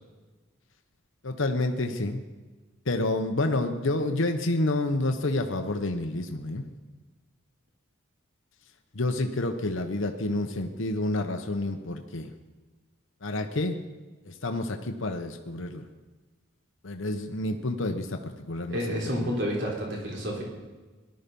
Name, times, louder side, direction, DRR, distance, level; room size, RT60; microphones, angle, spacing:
voice 1, 1.2-2.2 2.8-6.7 8.9-12.3 13.2-13.8 14.2-15.9 16.8-18.8 19.2-19.4, left 2 dB, 65° left, 5 dB, 1.0 m, -29 dB
voice 2, 18.7-20.4, equal, 55° right, -1 dB, 3.5 m, -30 dB
18.5 x 12.0 x 5.4 m, 1.3 s
head